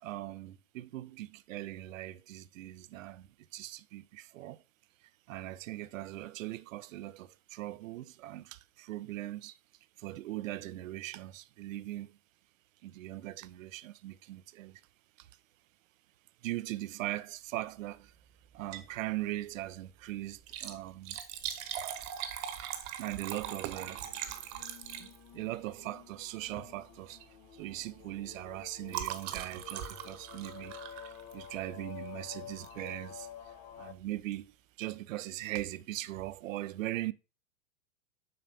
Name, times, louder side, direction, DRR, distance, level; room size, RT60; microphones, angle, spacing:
voice 1, 0.0-4.6 5.3-9.6 10.0-12.1 12.8-14.8 15.2-15.3 16.4-18.1 18.5-21.2 23.0-24.1 25.3-27.2 27.5-33.3 33.7-34.5 34.8-37.1, right 15 dB, 70° right, 0.5 m, -40 dB
Liquid, 18.5-19.0 19.3-19.4 20.3-25.5 26.5-26.7 27.1-27.3 27.6-31.7 32.6-32.9 33.4-33.5 33.7-33.8, right 10 dB, 45° right, 1.1 m, -41 dB
sound 1, 23.6-33.9, left 10 dB, 35° left, 0.5 m, -50 dB
7.7 x 5.0 x 2.7 m
hypercardioid pair, 105°, 42 cm